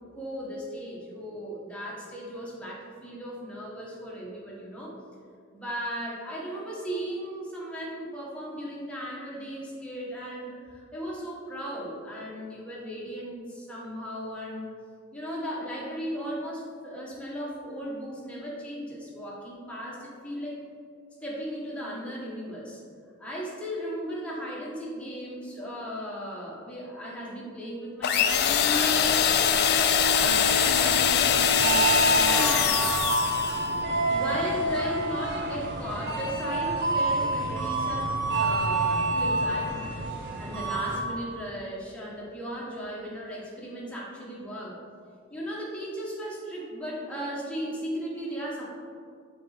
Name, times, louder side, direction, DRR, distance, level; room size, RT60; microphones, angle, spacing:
voice 1, 0.1-4.9 5.5-14.7 15.1-20.6 21.2-22.8 23.2-29.5 30.1-32.8 34.1-44.8 45.3-48.6, equal, 5° left, -5 dB, 1.2 m, -36 dB
sound 1, 28.0-33.6, left 7 dB, 50° left, 0.4 m, -22 dB
sound 2, 30.0-41.0, right 2 dB, 55° right, 0.8 m, -28 dB
6.4 x 4.1 x 4.1 m, 2.2 s
head